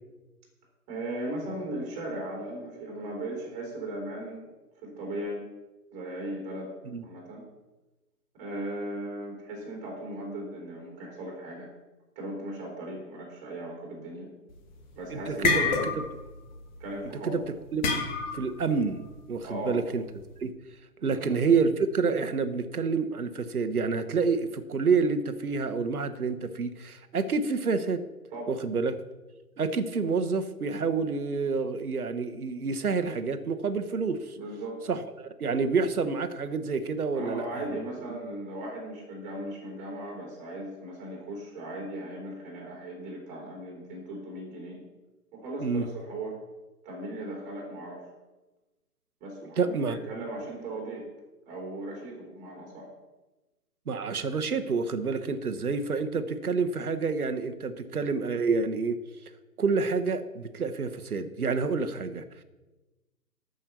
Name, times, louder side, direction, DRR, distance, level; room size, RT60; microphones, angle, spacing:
voice 1, 0.9-4.5 4.8-5.4 5.9-6.7 7.0-7.4 8.4-11.7 12.1-14.3 14.9-15.8 16.8-17.3 19.4-19.8 21.0-21.3 28.3-28.5 34.3-34.8 37.1-44.8 45.3-46.3 46.8-48.0 49.2-51.0 51.5-52.9, right 1 dB, 15° right, -1 dB, 3.2 m, -37 dB
sound 1, 14.6-14.9 15.2-16.3 16.5-16.8 17.8-18.5, left 4 dB, 30° left, 1.5 m, -27 dB
voice 2, 15.1-16.0 17.2-17.4 17.7-17.9 18.3-20.0 20.4-20.5 21.0-28.0 28.5-28.9 29.6-34.4 34.9-37.8 45.6-45.9 49.6-50.0 53.9-59.0 59.6-62.4, right 4 dB, 65° right, 9 dB, 1.2 m, -28 dB
13.0 x 5.5 x 6.7 m, 1.1 s
figure-of-eight pair, 135°, 47 cm